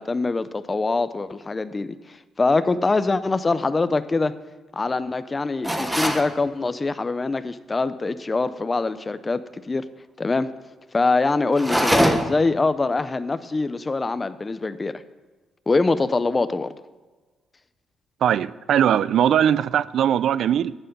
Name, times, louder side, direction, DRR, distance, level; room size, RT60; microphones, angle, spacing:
voice 1, 0.0-4.3 4.7-9.8 10.2-10.5 10.9-14.9 15.7-16.7, left 3 dB, 20° left, 13 dB, 0.6 m, -24 dB
sound 1, 5.6-6.3 11.5-12.5, equal, 5° right, 1.0 m, -22 dB
voice 2, 18.2-20.7, right 9 dB, 70° right, 19 dB, 0.4 m, -20 dB
11.0 x 9.3 x 5.3 m, 1.2 s
cardioid pair, 125°, 0 cm